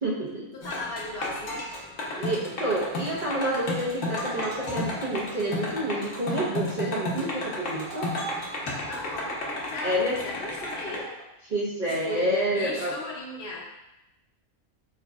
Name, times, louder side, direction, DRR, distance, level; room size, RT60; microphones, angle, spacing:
voice 1, 0.0-0.5 2.1-8.1 9.8-10.2 11.5-12.9, right 1 dB, 40° right, -8 dB, 1.3 m, -28 dB
voice 2, 0.5-1.7 8.6-11.1 11.8-13.7, left 2 dB, 50° left, -1 dB, 1.0 m, -37 dB
sound 1, 0.6-11.0, left 2 dB, 70° left, 1.3 m, -33 dB
sound 2, 7.6-9.6 10.3-11.2 13.0-13.2, right 5 dB, 65° right, 0.5 m, -40 dB
7.1 x 3.1 x 2.4 m, 0.93 s
omnidirectional pair, 1.4 m